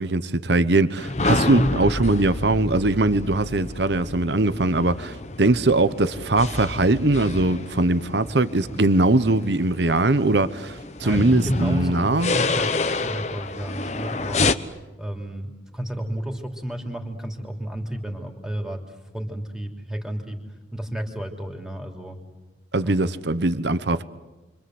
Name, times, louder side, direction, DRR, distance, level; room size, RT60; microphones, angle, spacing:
voice 1, 0.0-12.3 22.7-24.0, right 2 dB, 70° right, 1.0 m, -21 dB
sound 1, 1.0-14.5, left 3 dB, 35° left, 1.0 m, -29 dB
voice 2, 11.0-12.7 13.0-14.5 15.0-20.4 20.7-22.2 22.8-23.3, right 1 dB, 5° right, 3.1 m, -31 dB
29.5 x 25.0 x 7.9 m
head